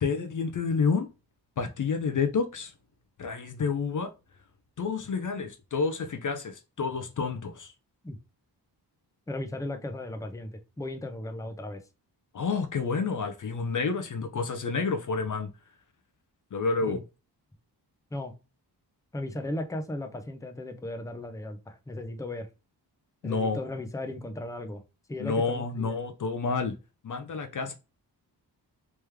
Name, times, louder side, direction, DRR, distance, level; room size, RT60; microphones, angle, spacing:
voice 1, 0.0-1.1 1.6-2.7 3.2-4.1 4.8-7.7 12.3-15.5 16.5-17.0 23.2-23.6 25.2-26.7 27.0-27.7, left 4 dB, 50° left, 0.6 m, -29 dB
voice 2, 9.3-10.5 10.8-11.8 16.8-17.0 18.1-18.3 19.1-22.5 23.2-24.8 25.1-26.0, left 1 dB, 10° left, 0.7 m, -36 dB
3.3 x 3.0 x 3.4 m
cardioid pair, 65°, 41 cm